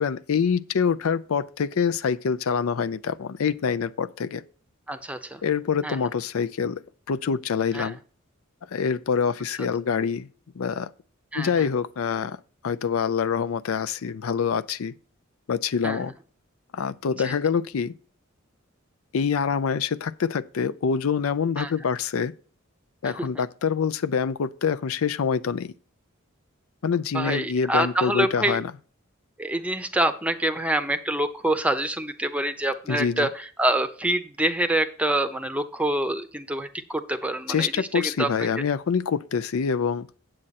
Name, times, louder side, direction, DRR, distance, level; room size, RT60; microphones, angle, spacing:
voice 1, 0.0-4.4 5.4-6.8 7.1-8.0 8.7-10.3 10.6-10.9 11.4-12.4 12.6-14.9 15.5-16.1 16.7-17.9 19.1-22.3 23.0-25.7 26.8-28.7 32.9-33.3 37.5-40.1, left 6 dB, 80° left, 0.5 m, -25 dB
voice 2, 4.9-5.4 5.8-6.0 7.7-7.9 11.3-11.7 15.8-16.1 17.2-17.4 21.6-21.7 23.0-23.3 27.1-28.6 29.4-38.5, right 1 dB, 5° right, 0.7 m, -26 dB
8.7 x 7.6 x 4.1 m
head